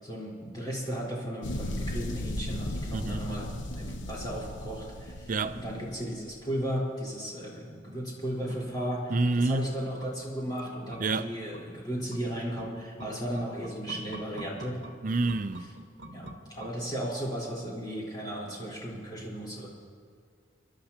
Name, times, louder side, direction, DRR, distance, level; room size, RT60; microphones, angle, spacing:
voice 1, 0.0-14.8 16.0-19.7, equal, 25° left, 4.0 m, -35 dB
sound 1, 1.4-6.3, left 1 dB, 85° left, 1.0 m, -36 dB
voice 2, 2.9-3.2 5.3-5.6 9.1-9.7 11.0-11.3 15.0-15.7, right 3 dB, 45° right, 0.5 m, -27 dB
sound 2, 7.7-17.3 17.6-17.7, right 1 dB, 65° right, 0.9 m, -48 dB
29.0 x 12.0 x 2.9 m
head